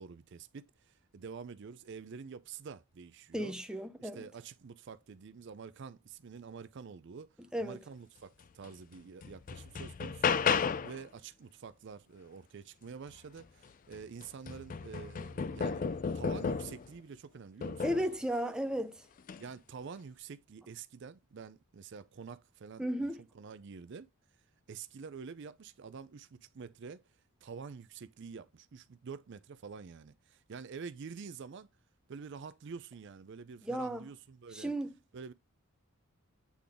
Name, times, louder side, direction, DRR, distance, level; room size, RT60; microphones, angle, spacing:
voice 1, 0.0-3.6 4.0-15.9 16.1-18.0 19.4-22.9 23.3-24.1 24.7-27.0 27.4-31.7 32.1-34.7 35.1-35.3, right 5 dB, 55° right, 0.4 m, -47 dB
voice 2, 3.3-4.2 7.5-7.8 17.8-19.0 22.8-23.2 33.6-34.1 34.5-34.9, equal, 5° right, 0.6 m, -34 dB
sound 1, 8.6-8.7 9.2-11.0 13.4-13.5 13.9-16.9 17.6-18.1 19.2-19.4, left 6 dB, 40° left, 0.3 m, -33 dB
8.4 x 3.8 x 3.5 m
head